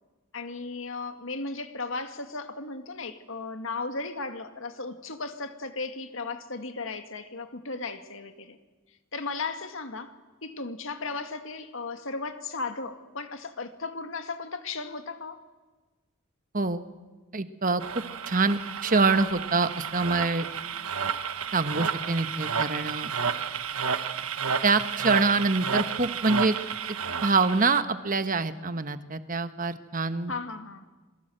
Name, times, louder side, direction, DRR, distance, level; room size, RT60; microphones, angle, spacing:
voice 1, 0.3-8.6 9.1-10.1 10.4-15.4 30.3-30.9, left 3 dB, 60° left, 8 dB, 2.0 m, -36 dB
voice 2, 17.3-17.8 18.3-20.5 21.5-23.1 24.6-26.6 26.8-27.0 27.2-30.3, right 3 dB, 40° right, 10 dB, 1.2 m, -25 dB
sound 1, 17.8-27.8, right 6 dB, 75° right, 1.2 m, -31 dB
27.5 x 22.5 x 7.8 m, 1.3 s
head